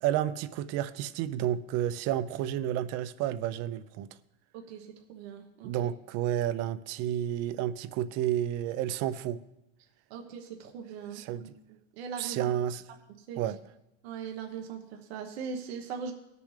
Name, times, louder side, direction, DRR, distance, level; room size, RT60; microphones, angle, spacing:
voice 1, 0.0-4.1 5.6-9.4 11.1-11.4 12.2-12.8 13.4-13.6, right 11 dB, 55° right, 0.6 m, -31 dB
voice 2, 4.5-5.7 10.1-12.5 13.3-13.4 14.0-16.1, right 6 dB, 85° right, 1.2 m, -40 dB
18.5 x 6.9 x 3.3 m
supercardioid pair, 120°, 31 cm